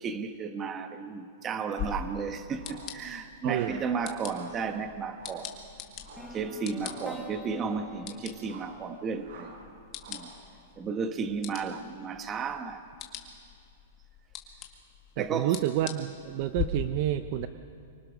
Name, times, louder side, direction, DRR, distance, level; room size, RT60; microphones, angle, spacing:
voice 1, 0.0-5.5 6.3-9.5 10.1-10.3 10.8-12.8 15.2-15.5, right 5 dB, 20° right, 8 dB, 1.1 m, -33 dB
sound 1, 1.7-2.0 2.6-2.9 3.5-3.9 4.3-4.7 5.1-5.5 6.0-6.3 6.8-7.1 7.5-7.9 8.4-8.8 9.2-9.6 10.0-10.3, right 3 dB, 65° right, 6.6 m, -48 dB
sound 2, 1.8-16.6, left 10 dB, 30° left, 2.0 m, -43 dB
voice 2, 3.4-3.8 15.2-17.5, right 13 dB, 40° right, 10 dB, 0.6 m, -29 dB
sound 3, 6.2-10.1, equal, 5° left, 2.0 m, -47 dB
25.0 x 24.5 x 6.2 m, 2.3 s
supercardioid pair, 165°, 0 cm